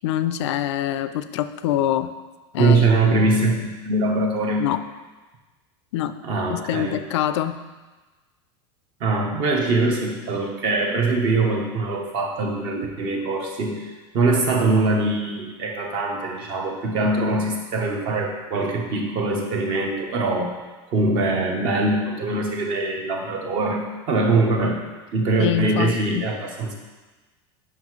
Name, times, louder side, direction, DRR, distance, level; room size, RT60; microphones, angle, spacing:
voice 1, 0.0-2.1 2.5-2.8 3.1-3.2 4.6-4.8 5.9-6.1 6.5-7.6 25.4-26.2, left 11 dB, 80° left, 11 dB, 0.4 m, -24 dB
voice 2, 2.6-4.6 6.2-7.0 9.0-20.5 20.9-24.8 25.1-26.8, right 2 dB, 35° right, 2 dB, 1.0 m, -22 dB
7.8 x 5.6 x 3.1 m, 1.2 s
supercardioid pair, 165°, 15 cm